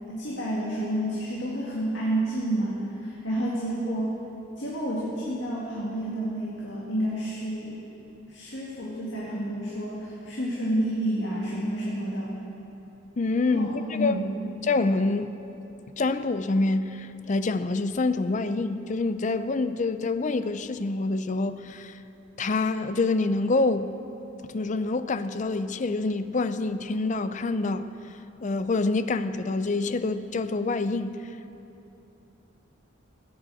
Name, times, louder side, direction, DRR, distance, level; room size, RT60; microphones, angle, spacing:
voice 1, 0.1-4.1 4.6-7.9 8.3-12.3 13.5-14.4, right 1 dB, 60° left, -5 dB, 2.1 m, -30 dB
voice 2, 13.2-14.2 14.6-15.3 16.0-22.0 22.4-23.9 24.4-27.9 28.4-31.2, left 3 dB, 35° left, 12 dB, 0.4 m, -26 dB
15.5 x 9.3 x 7.6 m, 2.9 s
head